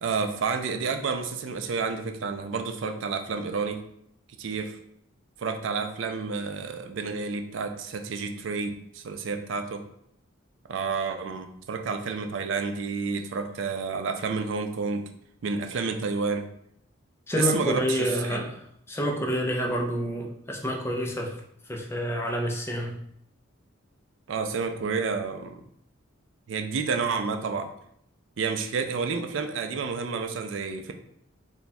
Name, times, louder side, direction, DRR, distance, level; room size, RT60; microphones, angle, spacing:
voice 1, 0.0-3.8 4.4-4.8 5.4-9.8 10.7-15.1 15.4-16.5 17.4-18.4 24.3-25.6 26.5-27.7 28.4-30.9, right 5 dB, 70° right, 6 dB, 0.4 m, -30 dB
voice 2, 17.3-18.6 18.9-21.4 21.7-22.9, equal, 10° left, 1 dB, 0.4 m, -28 dB
3.4 x 2.2 x 4.1 m, 0.71 s
head